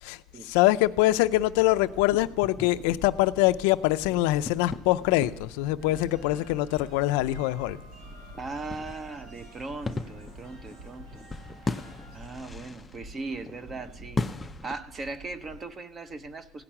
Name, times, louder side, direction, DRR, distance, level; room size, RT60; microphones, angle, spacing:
voice 1, 0.0-7.8, left 16 dB, 85° left, 0.5 m, -24 dB
sound 1, 1.1-15.6, right 2 dB, 35° right, 1.2 m, -49 dB
sound 2, 2.1-14.8, left 3 dB, 10° left, 0.4 m, -39 dB
sound 3, 5.8-12.3, right 3 dB, 90° right, 5.0 m, -51 dB
voice 2, 8.4-11.1 12.1-14.2 14.6-16.6, right 3 dB, 20° right, 0.7 m, -38 dB
16.0 x 5.9 x 9.9 m
cardioid pair, 160°, 0 cm